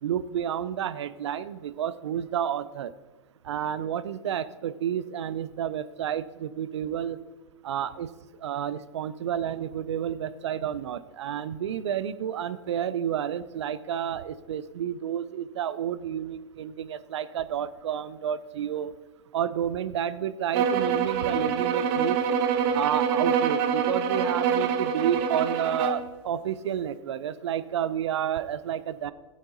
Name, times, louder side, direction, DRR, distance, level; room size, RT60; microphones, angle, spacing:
voice 1, 0.0-2.9 3.4-7.2 7.6-8.1 8.4-18.9 19.3-22.2 22.7-29.1, right 9 dB, 70° right, 15 dB, 0.7 m, -30 dB
sound 1, 20.5-26.1, right 7 dB, 50° right, 1.3 m, -25 dB
17.0 x 8.7 x 4.0 m, 1.2 s
hypercardioid pair, 105°, 15 cm